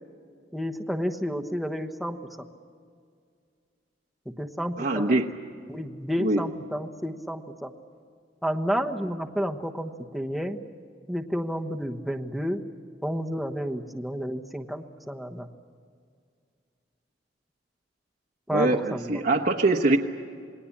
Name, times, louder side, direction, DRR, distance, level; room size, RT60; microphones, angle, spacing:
voice 1, 0.5-2.5 4.4-5.2 5.7-7.7 8.4-10.6 11.1-12.6 13.0-15.5 18.5-19.2, equal, ahead, 3 dB, 1.2 m, -31 dB
voice 2, 4.8-5.3 6.2-6.4 18.5-20.0, right 2 dB, 55° right, 0 dB, 1.2 m, -23 dB
27.5 x 20.5 x 8.6 m, 2.2 s
head